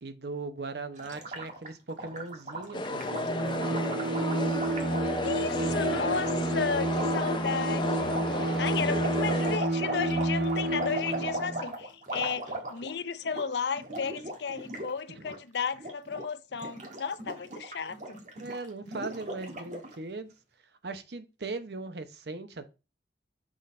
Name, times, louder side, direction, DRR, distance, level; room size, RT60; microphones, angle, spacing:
voice 1, 0.0-4.3 5.3-6.4 15.2-15.3 18.4-20.3 20.8-22.7, right 3 dB, 65° right, 0.8 m, -40 dB
Gurgling, 1.0-5.6 6.2-6.4 6.9-7.3 8.1-13.0 13.3-13.5 13.7-14.9 15.2-15.4 15.7-16.3 16.5-20.0, right 1 dB, 40° right, 1.5 m, -38 dB
sound 1, 2.7-9.6, left 2 dB, 25° left, 0.5 m, -33 dB
Bowed string instrument, 3.1-11.6, right 2 dB, 85° right, 1.6 m, -30 dB
voice 2, 5.2-18.2, left 5 dB, 70° left, 0.6 m, -34 dB
6.3 x 3.9 x 4.2 m
head